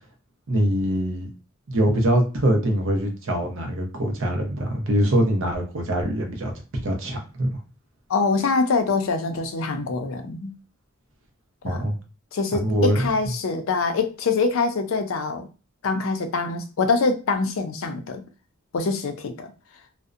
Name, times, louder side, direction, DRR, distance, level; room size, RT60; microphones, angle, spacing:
voice 1, 0.5-1.3 1.7-7.6 11.6-11.9 12.5-13.1, right 1 dB, 65° right, 0.6 m, -23 dB
voice 2, 8.1-10.5 11.6-11.8 12.3-15.5 15.8-18.2 18.7-19.5, left 4 dB, 65° left, 0.4 m, -24 dB
2.5 x 2.0 x 2.4 m
head